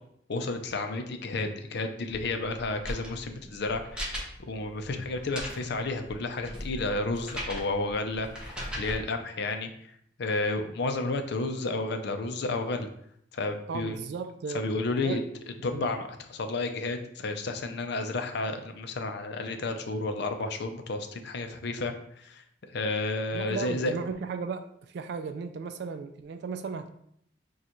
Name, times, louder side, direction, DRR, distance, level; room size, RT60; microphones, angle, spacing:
voice 1, 0.3-9.9 10.2-12.9 13.3-13.9 14.5-15.2 15.6-22.4 22.7-23.9, left 2 dB, 65° left, 7 dB, 0.5 m, -31 dB
sound 1, 2.1-9.0, equal, 5° right, 1.0 m, -39 dB
voice 2, 13.7-15.2 15.7-15.9 23.3-26.9, right 5 dB, 60° right, 8 dB, 0.3 m, -36 dB
6.5 x 2.4 x 3.0 m, 0.70 s
head